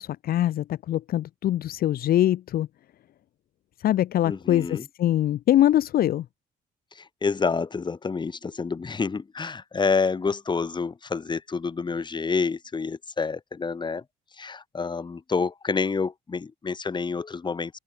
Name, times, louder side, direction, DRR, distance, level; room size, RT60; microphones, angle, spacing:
voice 1, 0.0-2.7 3.8-6.2, left 12 dB, 60° left, 1.7 m, -23 dB
voice 2, 4.2-4.9 6.9-14.0 14.4-17.8, left 4 dB, 25° left, 6.1 m, -28 dB
open air
cardioid pair, 110°, 17 cm